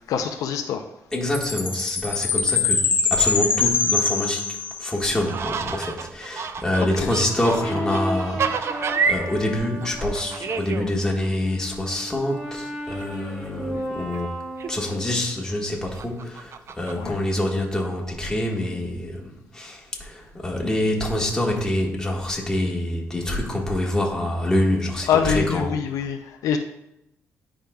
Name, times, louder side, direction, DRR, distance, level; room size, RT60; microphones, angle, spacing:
voice 1, 0.1-0.8 7.0-7.2 7.6-7.8 8.9-9.0 17.0-17.2 25.1-26.6, left 7 dB, 80° left, 6 dB, 0.5 m, -25 dB
voice 2, 1.1-4.4 4.8-14.3 14.7-25.6, left 1 dB, 10° left, -2 dB, 1.4 m, -26 dB
Chime, 1.3-5.1, left 5 dB, 35° left, 0.7 m, -23 dB
sound 1, 5.3-9.3 9.6-10.9 11.2-11.3 12.6-12.7 13.0-13.1 13.5-13.6 14.0-14.2 14.6-15.2 16.0-16.9, right 6 dB, 50° right, 0.4 m, -29 dB
Brass instrument, 6.7-10.6 11.2-15.3, equal, 15° right, 2.1 m, -34 dB
10.0 x 5.0 x 2.3 m, 0.84 s
cardioid pair, 100°, 6 cm